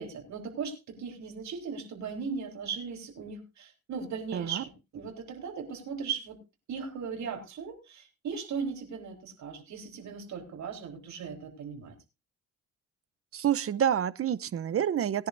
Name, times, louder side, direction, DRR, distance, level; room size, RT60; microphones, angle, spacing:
voice 1, 0.0-6.4 6.7-11.9, right 6 dB, 70° right, 4.0 m, -38 dB
voice 2, 4.3-4.6 13.3-15.3, right 9 dB, 50° right, 0.8 m, -28 dB
19.5 x 10.5 x 2.7 m
cardioid pair, 90°, 30 cm